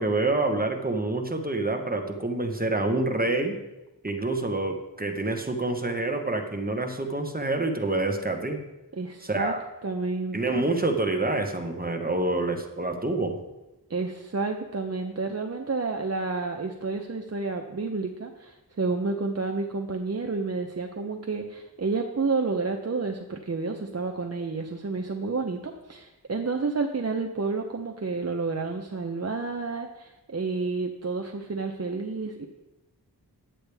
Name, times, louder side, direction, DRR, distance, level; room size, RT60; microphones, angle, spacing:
voice 1, 0.0-3.6 4.0-8.6 9.2-9.6 10.3-13.4, right 2 dB, 25° right, 4 dB, 1.1 m, -27 dB
voice 2, 9.0-9.5 9.8-10.6 13.9-32.5, right 4 dB, 40° right, 3 dB, 0.7 m, -30 dB
10.0 x 8.0 x 3.4 m, 1.0 s
wide cardioid pair, 50°, 39 cm